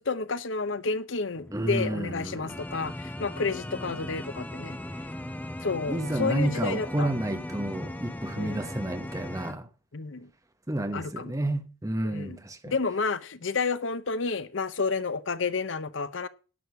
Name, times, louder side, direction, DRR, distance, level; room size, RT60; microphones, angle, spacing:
voice 1, 0.0-4.8 5.6-7.1 8.4-8.6 9.9-10.3 10.9-11.3 12.0-12.4 12.7-16.3, left 4 dB, 65° left, 0.8 m, -30 dB
sound 1, 1.3-9.5, left 1 dB, 10° left, 0.6 m, -38 dB
voice 2, 1.5-2.6 5.9-9.7 10.7-12.7, right 1 dB, 15° right, 1.0 m, -30 dB
11.0 x 6.3 x 6.9 m
head